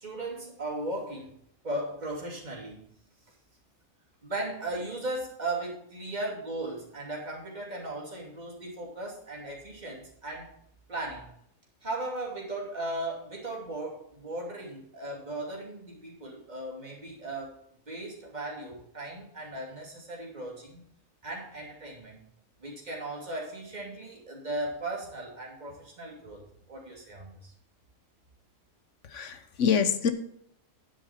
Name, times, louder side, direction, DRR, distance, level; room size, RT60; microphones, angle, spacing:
voice 1, 0.0-1.3 1.6-2.9 4.2-10.5 10.9-11.3 11.8-17.5 17.9-20.8 21.2-22.2 22.6-26.4 26.7-27.5, right 2 dB, 30° right, -3 dB, 3.0 m, -37 dB
voice 2, 29.0-30.1, left 6 dB, 65° left, 10 dB, 1.2 m, -26 dB
9.8 x 8.3 x 4.5 m, 0.70 s
omnidirectional pair, 1.4 m